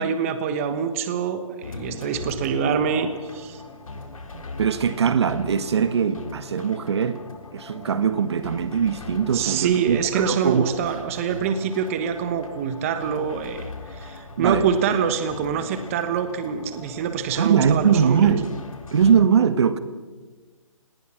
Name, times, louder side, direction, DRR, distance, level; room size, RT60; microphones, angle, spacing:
voice 1, 0.0-3.6 8.4-8.5 9.3-18.3, right 7 dB, 25° right, 9 dB, 1.3 m, -25 dB
sound 1, 1.6-19.2, left 3 dB, 80° left, 3.8 m, -39 dB
voice 2, 4.6-7.2 7.5-10.6 14.4-14.7 17.4-18.5 18.9-19.8, right 7 dB, 50° right, 12 dB, 1.4 m, -21 dB
27.5 x 19.5 x 6.0 m, 1.3 s
hypercardioid pair, 160°, 17 cm